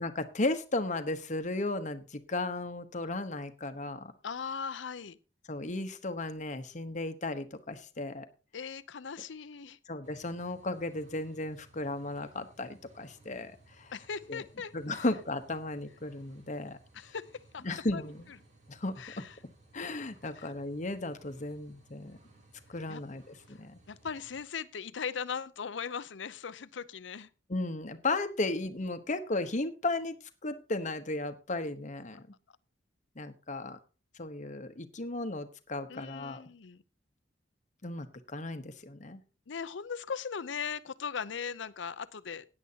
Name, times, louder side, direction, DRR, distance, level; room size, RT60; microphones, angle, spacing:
voice 1, 0.0-4.1 5.5-8.3 9.9-13.9 14.3-14.4 14.7-16.8 17.6-18.3 18.7-19.2 19.7-22.2 22.7-23.8 27.5-30.2 30.4-32.2 33.2-33.8 34.1-36.4 37.8-39.2, left 2 dB, 45° left, 1.1 m, -35 dB
voice 2, 4.2-5.2 8.5-9.8 13.9-15.0 16.9-17.6 17.9-18.1 19.0-19.3 20.4-20.5 22.9-23.0 23.5-23.6 23.9-27.3 35.9-36.8 39.5-42.4, left 6 dB, 85° left, 0.6 m, -39 dB
sound 1, 10.0-24.4, right 2 dB, 45° right, 3.8 m, -61 dB
16.5 x 9.8 x 2.8 m
head